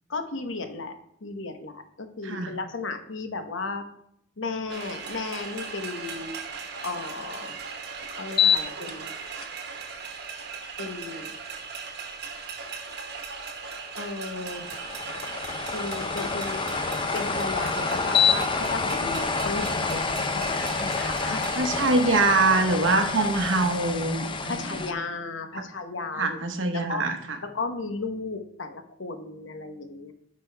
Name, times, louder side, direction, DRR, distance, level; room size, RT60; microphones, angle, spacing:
voice 1, 0.1-3.8 4.4-6.4 6.8-7.6 8.1-9.1 10.8-11.3 14.0-14.6 15.7-16.6 17.1-21.5 22.7-23.3 24.5-26.4 26.7-27.1 27.4-30.1, left 3 dB, 80° left, 7 dB, 1.0 m, -34 dB
voice 2, 2.2-2.5 21.6-24.6 25.5-25.6 26.2-27.2, right 3 dB, 85° right, 6 dB, 1.1 m, -24 dB
sound 1, 4.7-21.6, right 5 dB, 60° right, 1.2 m, -38 dB
sound 2, 8.3-8.9 9.4-9.5 14.6-24.9, left 5 dB, 25° left, 0.5 m, -27 dB
9.3 x 5.2 x 3.4 m, 0.75 s
head